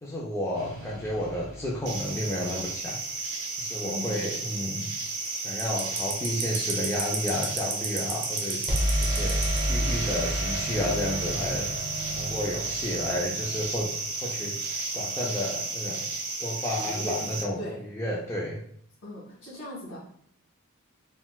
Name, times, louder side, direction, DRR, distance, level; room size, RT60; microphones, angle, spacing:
voice 1, 0.0-3.0 3.6-4.9 5.4-8.6 9.0-9.4 9.7-11.7 12.2-14.6 14.9-16.1 16.4-18.6, left 1 dB, 10° left, -4 dB, 0.3 m, -31 dB
sound 1, 0.6-2.6 8.7-14.5, equal, 20° right, 0.8 m, -32 dB
sound 2, 1.9-17.4, right 3 dB, 90° right, 0.6 m, -32 dB
voice 2, 3.8-4.4 16.8-17.2 17.6-17.8 19.0-20.0, equal, 60° left, -5 dB, 1.4 m, -38 dB
4.0 x 2.1 x 2.2 m, 0.65 s
head